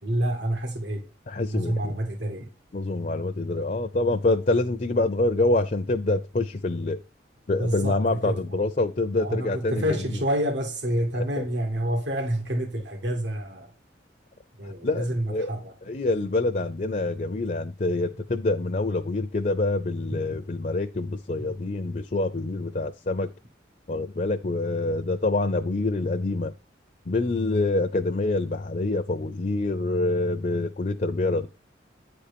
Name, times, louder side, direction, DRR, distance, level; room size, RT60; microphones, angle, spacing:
voice 1, 0.0-1.1 1.4-2.5 7.6-8.4 9.2-13.7 14.6-15.7, right 1 dB, 70° right, 1.8 m, -28 dB
voice 2, 1.3-1.9 2.7-7.0 7.5-10.0 11.1-11.4 14.6-15.5 15.9-23.3 23.9-26.5 27.1-31.5, left 2 dB, 40° left, 0.5 m, -26 dB
9.5 x 4.3 x 6.8 m
head